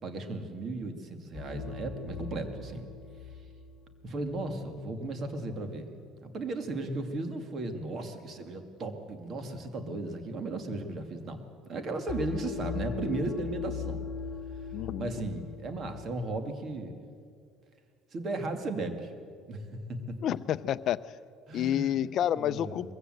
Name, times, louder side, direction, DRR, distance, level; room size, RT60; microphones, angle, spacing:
voice 1, 0.0-2.9 4.0-5.9 6.2-11.4 11.7-14.1 15.0-17.1 18.1-19.1 19.5-19.6 19.9-20.2 21.5-22.0 22.3-22.9, right 2 dB, 40° right, 7 dB, 2.2 m, -35 dB
sound 1, 1.3-4.4 12.1-16.1, left 6 dB, 5° left, 4.9 m, -39 dB
voice 2, 14.7-15.1 20.2-21.0 21.5-22.9, left 11 dB, 50° left, 13 dB, 0.5 m, -29 dB
22.0 x 15.5 x 7.8 m, 2.3 s
cardioid pair, 130°, 0 cm